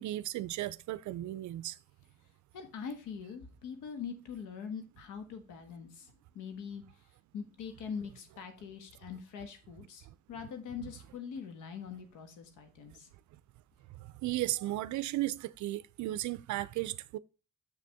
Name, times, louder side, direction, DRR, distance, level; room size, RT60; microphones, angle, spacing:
voice 1, 0.0-1.8 13.9-17.2, right 15 dB, 75° right, 0.5 m, -35 dB
voice 2, 2.5-6.8 7.3-13.1, left 6 dB, 90° left, 1.4 m, -43 dB
6.9 x 6.6 x 3.5 m
cardioid pair, 90°, 30 cm